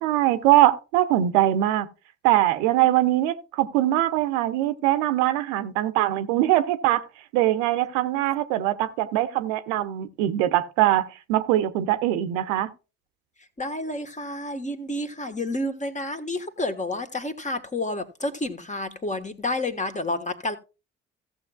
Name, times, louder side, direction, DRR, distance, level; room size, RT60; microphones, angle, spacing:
voice 1, 0.0-1.9 2.2-7.0 7.3-12.7, right 14 dB, 70° right, 0.9 m, -22 dB
voice 2, 13.6-20.6, left 2 dB, 20° left, 1.5 m, -30 dB
16.5 x 7.0 x 2.4 m
figure-of-eight pair, 40°, 36 cm